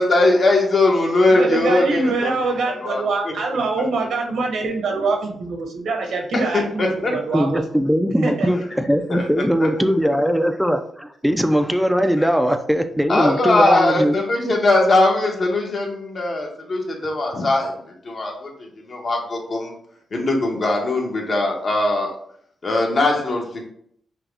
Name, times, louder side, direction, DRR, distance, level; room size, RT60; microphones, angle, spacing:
voice 1, 0.0-2.4 2.6-3.3 6.3-7.1 9.1-9.2 9.6-9.7 12.2-12.3 13.1-17.8 18.0-19.7 20.1-22.1 22.6-23.7, left 2 dB, 45° left, 0 dB, 1.2 m, -20 dB
voice 2, 1.3-7.6 8.2-8.5, right 3 dB, 75° right, 3 dB, 1.1 m, -24 dB
voice 3, 7.3-14.2, equal, ahead, 7 dB, 0.5 m, -20 dB
5.8 x 2.4 x 3.4 m, 0.65 s
cardioid pair, 85°, 0 cm